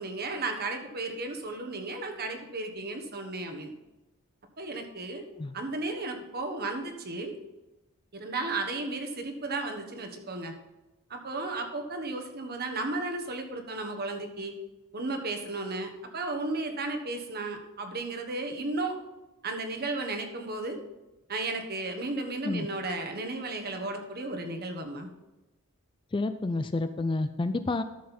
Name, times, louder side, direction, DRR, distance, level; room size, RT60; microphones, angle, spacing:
voice 1, 0.0-3.7 4.6-5.3 5.5-7.4 8.1-10.5 11.1-14.5 14.9-19.0 19.4-20.8 21.3-25.1, right 2 dB, 45° right, 5 dB, 1.3 m, -34 dB
voice 2, 26.1-27.8, left 2 dB, 20° left, 10 dB, 0.4 m, -29 dB
12.5 x 6.5 x 4.3 m, 1.0 s
head